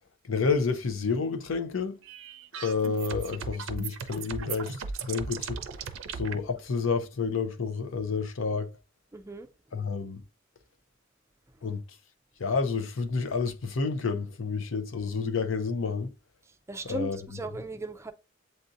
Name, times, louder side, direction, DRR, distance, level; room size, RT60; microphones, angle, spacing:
voice 1, 0.2-2.0 2.5-5.6 6.1-8.8 9.7-10.2 11.6-11.8 12.4-16.1 16.8-17.6, left 4 dB, 75° left, 0.6 m, -30 dB
sound 1, 2.0-6.4, right 6 dB, 70° right, 0.5 m, -37 dB
voice 2, 9.1-9.5 16.7-18.1, right 2 dB, 15° right, 0.4 m, -36 dB
7.8 x 2.7 x 2.5 m
head